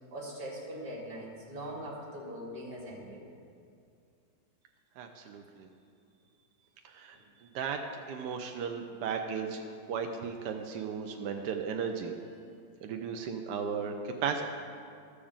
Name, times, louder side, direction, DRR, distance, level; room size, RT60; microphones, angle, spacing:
voice 1, 0.1-3.2 7.1-7.2, right 1 dB, 50° right, -4 dB, 2.8 m, -41 dB
voice 2, 5.0-5.7 6.8-7.2 7.5-7.8 8.1-9.6 9.9-12.1 12.8-14.4, right 6 dB, 75° right, 4 dB, 1.2 m, -35 dB
13.5 x 5.0 x 7.1 m, 2.4 s
omnidirectional pair, 1.9 m